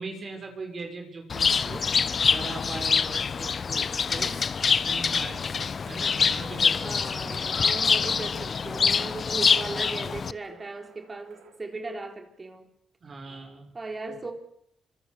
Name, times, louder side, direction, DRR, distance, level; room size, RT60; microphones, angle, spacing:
voice 1, 0.0-1.9 2.2-4.4 4.8-5.6 5.8-7.3 13.0-13.7, right 3 dB, 45° right, 6.1 m, -40 dB
Bird, 1.3-10.3, left 5 dB, 45° left, 0.9 m, -25 dB
sound 1, 4.7-11.5, right 6 dB, 90° right, 5.7 m, -57 dB
voice 2, 6.8-12.7 13.7-14.3, right 3 dB, 30° right, 4.1 m, -37 dB
26.0 x 21.0 x 7.1 m
cardioid pair, 75°, 0 cm